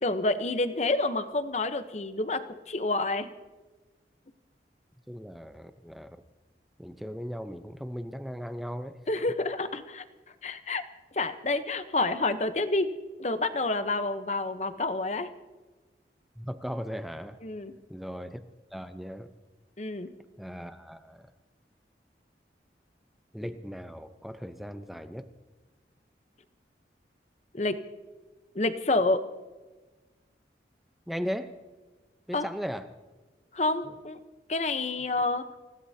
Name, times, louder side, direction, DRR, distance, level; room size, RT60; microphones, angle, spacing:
voice 1, 0.0-3.3 9.1-10.0 10.4-10.8 11.1-12.9 13.2-15.3 17.4-17.7 19.8-20.1 27.5-27.8 28.5-29.2 32.3-32.4 33.5-34.2 34.5-35.6, left 2 dB, 40° left, 10 dB, 0.9 m, -28 dB
voice 2, 5.1-6.2 6.8-9.0 16.4-17.4 17.9-18.4 18.7-19.3 20.4-21.3 23.3-25.3 31.1-31.5 32.3-32.9 33.8-33.9, equal, ahead, 8 dB, 0.7 m, -37 dB
28.5 x 16.5 x 2.8 m, 1.3 s
head